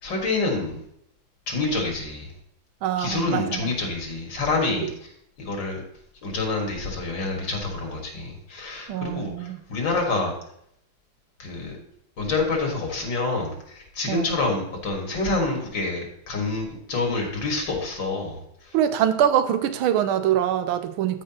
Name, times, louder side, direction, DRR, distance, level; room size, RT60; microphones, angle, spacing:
voice 1, 0.0-0.8 1.5-2.3 3.0-5.1 5.4-5.8 6.2-10.3 11.4-11.7 12.2-18.7, left 3 dB, 65° left, 1 dB, 2.4 m, -27 dB
voice 2, 2.8-3.7 8.9-9.6 14.1-14.3 18.7-21.2, right 10 dB, 85° right, 9 dB, 1.4 m, -24 dB
13.5 x 4.9 x 2.9 m, 0.72 s
omnidirectional pair, 2.2 m